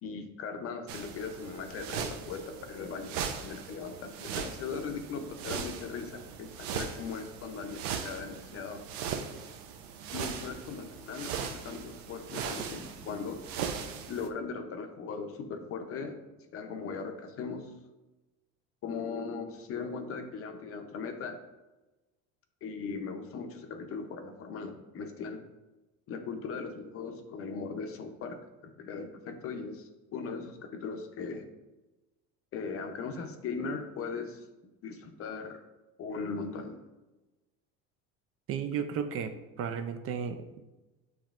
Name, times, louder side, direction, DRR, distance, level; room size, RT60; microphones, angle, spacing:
voice 1, 0.0-8.8 10.1-13.4 14.1-16.2 16.5-17.7 18.8-21.4 22.6-25.5 26.1-31.4 32.5-34.4 34.8-35.6 36.0-36.8, left 5 dB, 45° left, 7 dB, 0.6 m, -39 dB
sound 1, 0.9-14.3, right 7 dB, 90° right, 0.6 m, -39 dB
voice 2, 38.5-40.6, right 7 dB, 45° right, 9 dB, 0.4 m, -34 dB
7.0 x 3.0 x 2.4 m, 1.1 s
cardioid pair, 120°, 32 cm